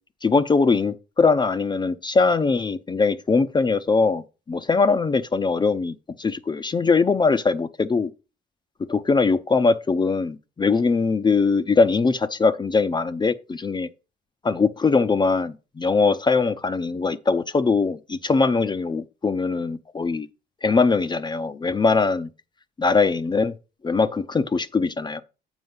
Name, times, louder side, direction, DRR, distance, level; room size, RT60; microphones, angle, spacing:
voice 1, 0.2-8.1 8.9-13.9 14.4-20.3 20.6-22.3 22.8-23.5 23.8-25.2, left 4 dB, 25° left, 0.5 m, -21 dB
7.9 x 4.5 x 5.4 m
cardioid pair, 105°, 19 cm